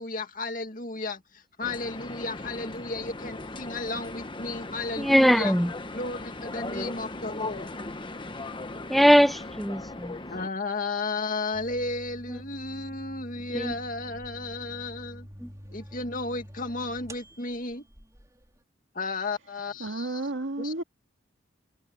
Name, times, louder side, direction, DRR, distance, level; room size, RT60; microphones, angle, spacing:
voice 1, 0.0-5.6 5.9-7.7 10.3-15.3 15.7-17.9 18.9-20.2 20.6-20.8, left 3 dB, 45° left, 2.1 m, -34 dB
sound 1, 1.6-10.5, left 2 dB, 25° left, 1.1 m, -38 dB
voice 2, 5.0-5.7 8.9-10.1 13.5-13.7 15.4-15.5, equal, ahead, 0.6 m, -21 dB
sound 2, 11.5-18.6, equal, 15° right, 3.6 m, -46 dB
voice 3, 19.8-20.8, right 2 dB, 80° right, 2.1 m, -31 dB
head